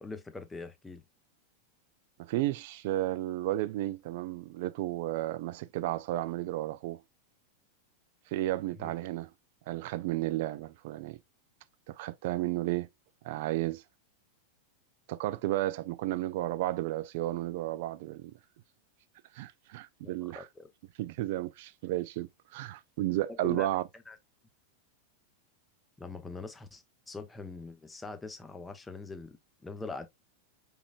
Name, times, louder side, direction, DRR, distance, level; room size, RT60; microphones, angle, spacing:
voice 1, 0.0-1.0 8.8-8.9 20.0-20.7 23.3-23.7 24.1-24.2 26.0-30.1, left 3 dB, 10° left, 0.7 m, -43 dB
voice 2, 2.2-7.0 8.3-9.3 9.7-11.2 11.9-12.9 13.2-13.8 15.1-18.3 19.3-20.5 21.0-23.8, right 15 dB, 50° right, 0.4 m, -33 dB
4.8 x 3.5 x 2.4 m
figure-of-eight pair, 90°, 0 cm